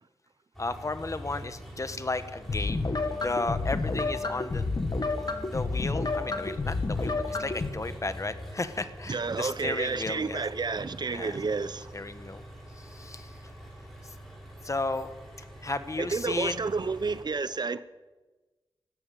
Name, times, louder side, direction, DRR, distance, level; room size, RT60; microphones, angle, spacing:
Engine, 0.5-17.2, equal, 5° left, 5.9 m, -45 dB
voice 1, 0.6-4.7 5.4-10.4 11.1-11.4 11.9-12.4 12.8-13.3 14.6-15.1 15.6-16.6, left 3 dB, 35° left, 1.0 m, -34 dB
sound 1, 2.5-7.7, left 3 dB, 50° left, 1.6 m, -30 dB
voice 2, 9.1-11.9 16.0-17.8, right 4 dB, 55° right, 0.6 m, -30 dB
13.5 x 12.5 x 8.4 m
wide cardioid pair, 105°, 9 cm